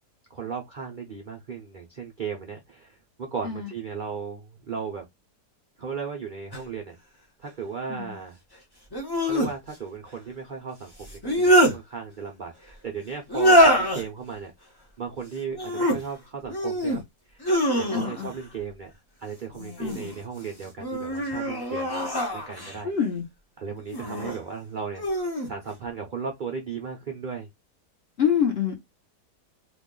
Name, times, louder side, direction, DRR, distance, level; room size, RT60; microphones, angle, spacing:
voice 1, 0.3-5.0 5.8-7.0 7.4-8.4 9.2-14.5 15.0-17.0 17.3-17.5 17.8-21.9 22.3-22.9 23.6-25.1 25.5-27.5, right 6 dB, 70° right, 0.4 m, -36 dB
sound 1, 6.5-6.6 8.9-9.5 11.0-11.8 13.3-14.0 15.5-16.0 16.5-17.0 17.4-18.3 19.5-20.2 20.8-22.8 23.9-24.4 25.0-25.5, equal, 25° left, 0.5 m, -23 dB
voice 2, 17.9-18.3 19.8-20.1 22.8-23.2 28.2-28.8, left 8 dB, 45° left, 1.1 m, -26 dB
3.0 x 2.4 x 3.8 m
omnidirectional pair, 1.8 m